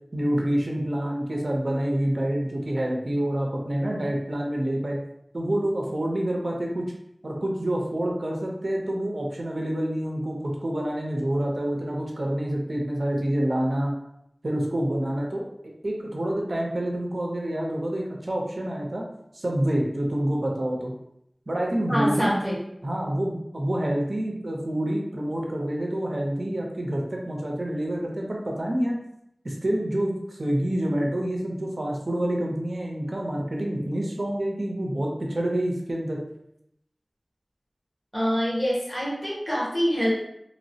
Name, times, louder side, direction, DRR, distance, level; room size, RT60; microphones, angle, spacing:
voice 1, 0.1-5.0 5.3-6.9 7.2-13.9 14.4-15.4 15.8-19.0 19.3-20.9 21.5-22.3 22.8-29.0 29.4-36.2, right 1 dB, 75° right, -1 dB, 0.5 m, -27 dB
voice 2, 21.9-22.6 38.1-40.1, equal, 25° left, -7 dB, 1.3 m, -25 dB
3.0 x 2.0 x 2.7 m, 0.77 s
wide cardioid pair, 45°, 0 cm